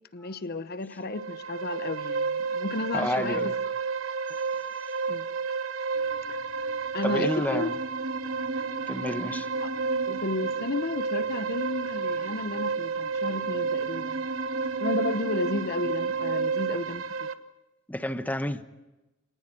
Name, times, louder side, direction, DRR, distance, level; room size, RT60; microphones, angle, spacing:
voice 1, 0.1-3.5 5.1-5.2 6.3-6.4 6.9-7.7 9.6-9.7 10.1-14.2 14.8-17.3, left 2 dB, 50° left, 0.9 m, -33 dB
sound 1, 1.0-17.3, right 5 dB, 85° right, 1.1 m, -31 dB
voice 2, 2.9-3.5 7.0-7.7 8.9-9.5 17.9-18.6, left 1 dB, 10° left, 1.1 m, -30 dB
sound 2, 5.9-17.0, right 1 dB, 60° right, 4.9 m, -40 dB
26.5 x 19.5 x 7.6 m
head